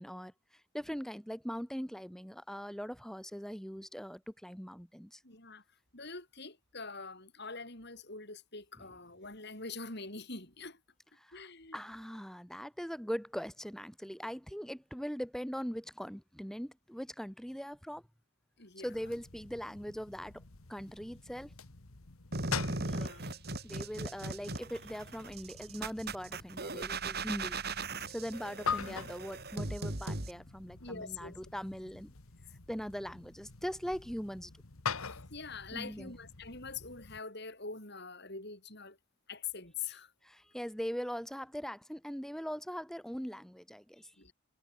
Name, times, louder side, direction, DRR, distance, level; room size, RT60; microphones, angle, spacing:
voice 1, 0.0-5.2 11.2-11.4 11.7-18.0 18.8-20.4 20.7-21.5 22.9-23.2 23.6-27.6 28.1-32.1 32.7-34.5 35.7-36.1 40.2-44.1, equal, ahead, 1.9 m, -41 dB
voice 2, 5.2-5.6 5.9-10.8 11.3-11.8 18.6-19.1 22.7-23.3 30.8-31.4 35.0-39.0 39.3-40.1 44.2-44.3, left 4 dB, 50° left, 6.0 m, -44 dB
sound 1, 18.9-37.2, left 5 dB, 80° left, 1.7 m, -45 dB
sound 2, 22.3-30.3, right 3 dB, 45° right, 4.3 m, -38 dB
head